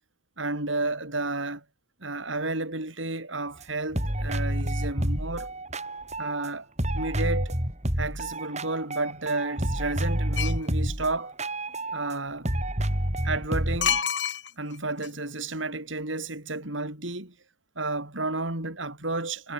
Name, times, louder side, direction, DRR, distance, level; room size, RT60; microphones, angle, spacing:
voice 1, 0.4-1.6 2.0-5.5 6.2-6.7 6.9-7.6 8.0-11.3 11.9-12.5 13.2-14.0 14.6-17.3 17.8-19.5, right 2 dB, 80° right, 6.3 m, -31 dB
sound 1, 3.6-3.7 3.9-6.5 6.8-12.2 12.5-14.0, right 1 dB, 35° right, 6.6 m, -29 dB
sound 2, 10.4-10.7 13.8-14.8 15.0-15.1, left 8 dB, 65° left, 4.3 m, -27 dB
head